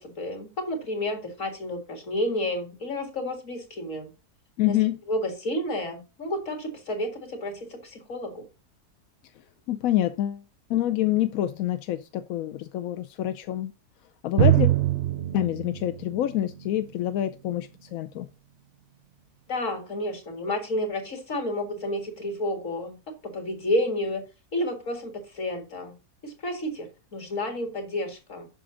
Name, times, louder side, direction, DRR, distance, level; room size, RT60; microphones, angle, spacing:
voice 1, 0.0-4.1 4.7-4.8 5.1-8.4 19.5-25.9 26.2-28.5, left 1 dB, 50° left, 2.3 m, -31 dB
voice 2, 4.6-5.0 9.7-10.4 10.7-13.7 14.2-14.7 15.3-18.3, left 13 dB, 70° left, 0.9 m, -26 dB
Drum, 14.4-17.9, right 13 dB, 60° right, 0.8 m, -25 dB
7.7 x 6.2 x 3.7 m
omnidirectional pair, 1.7 m